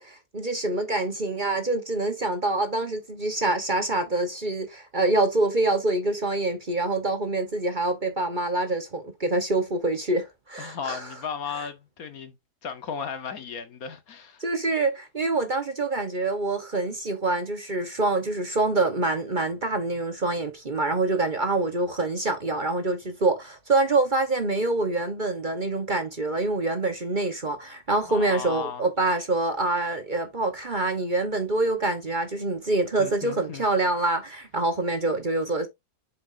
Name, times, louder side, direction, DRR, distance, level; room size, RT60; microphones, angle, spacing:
voice 1, 0.0-11.0 14.4-35.7, right 2 dB, 35° right, 1.1 m, -26 dB
voice 2, 10.6-12.4 12.6-14.4 28.1-28.8 33.0-33.7, left 7 dB, 65° left, 1.5 m, -35 dB
7.4 x 6.0 x 2.6 m
omnidirectional pair, 1.7 m